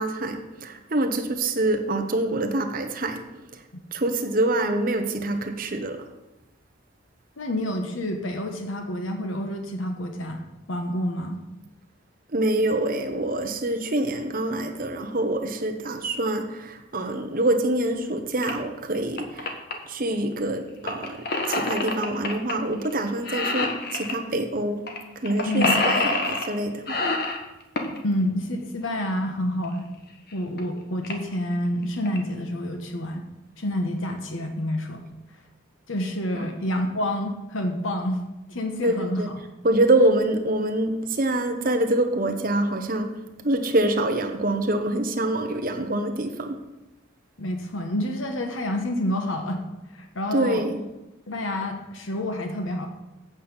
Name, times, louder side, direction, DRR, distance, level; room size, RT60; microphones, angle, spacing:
voice 1, 0.0-3.6 3.9-6.0 12.3-19.6 19.8-24.9 25.1-27.1 36.3-36.5 38.8-39.3 39.6-46.6 50.3-50.8, right 1 dB, 45° right, 1.0 m, -25 dB
voice 2, 7.4-10.4 10.7-11.4 25.5-25.8 28.0-29.9 30.3-33.2 33.6-35.0 35.9-38.2 38.5-39.2 47.4-49.6 49.9-50.6 51.3-52.9, left 1 dB, 80° left, 1.2 m, -28 dB
sound 1, 18.4-18.5 18.9-19.7 20.9-22.5 22.8-23.0 23.2-24.2 24.9-25.0 25.2-26.5 26.9-28.0 29.6-29.7 30.3-30.4 30.6-30.7 31.0-31.3 31.8-32.2, left 3 dB, 50° left, 1.3 m, -26 dB
8.5 x 5.8 x 7.1 m
head